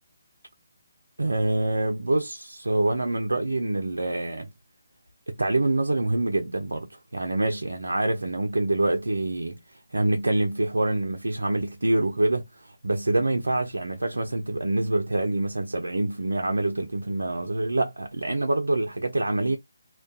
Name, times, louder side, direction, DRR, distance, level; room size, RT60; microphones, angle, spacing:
voice 1, 1.2-4.5 5.3-19.6, right 2 dB, 85° right, 0.4 m, -26 dB
2.3 x 2.1 x 2.6 m
figure-of-eight pair, 150°, 0 cm